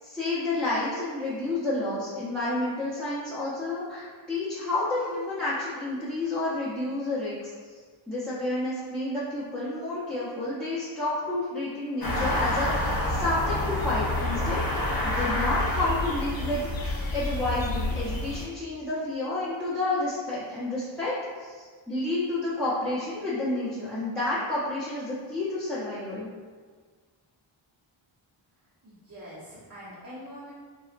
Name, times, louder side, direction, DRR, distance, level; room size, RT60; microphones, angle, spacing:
voice 1, 0.0-7.5 8.1-26.3, left 2 dB, ahead, -11 dB, 0.6 m, -30 dB
sound 1, 12.0-18.4, left 1 dB, 45° left, 0.7 m, -28 dB
voice 2, 28.8-30.5, equal, 40° right, -10 dB, 0.8 m, -44 dB
3.9 x 2.0 x 2.5 m, 1.5 s
wide cardioid pair, 85°, 50 cm